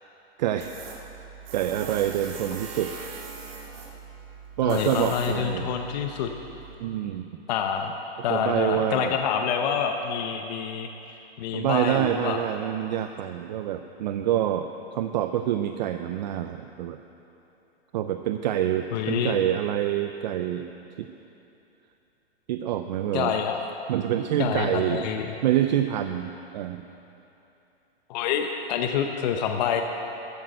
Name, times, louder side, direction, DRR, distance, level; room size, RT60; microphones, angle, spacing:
voice 1, 0.4-0.8 1.5-3.0 4.6-5.7 6.8-7.4 8.3-9.2 11.5-17.0 17.9-20.7 21.0-21.1 22.5-23.3 23.9-25.1 25.4-26.8, right 11 dB, 45° right, 7 dB, 0.5 m, -26 dB
Tools, 0.6-6.8, right 5 dB, 65° right, 2.4 m, -41 dB
voice 2, 4.6-6.3 7.5-8.0 8.2-12.4 18.9-19.4 23.1-23.6 24.4-25.3 28.1-29.8, left 7 dB, 40° left, 5 dB, 0.8 m, -27 dB
14.0 x 9.3 x 7.9 m, 2.9 s
hypercardioid pair, 155°, 32 cm